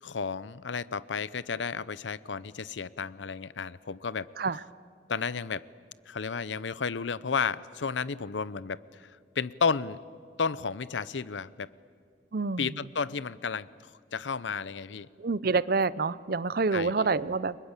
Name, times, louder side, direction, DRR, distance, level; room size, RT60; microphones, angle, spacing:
voice 1, 0.0-4.3 5.1-5.6 6.1-10.0 10.4-11.7 12.6-15.1 16.7-16.9, left 5 dB, 90° left, 18 dB, 0.7 m, -32 dB
voice 2, 12.3-12.7 15.2-17.6, right 4 dB, 55° right, 18 dB, 0.7 m, -27 dB
30.0 x 23.5 x 8.2 m, 2.2 s
head